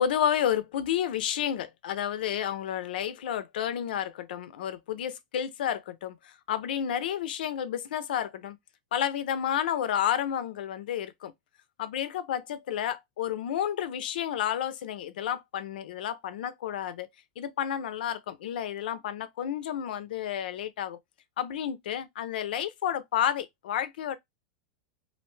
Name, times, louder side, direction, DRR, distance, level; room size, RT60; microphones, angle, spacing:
voice 1, 0.0-8.6 8.9-11.3 11.8-17.1 17.4-21.0 21.4-24.2, left 10 dB, 85° left, 0.5 m, -31 dB
2.5 x 2.1 x 3.1 m
supercardioid pair, 150°, 5 cm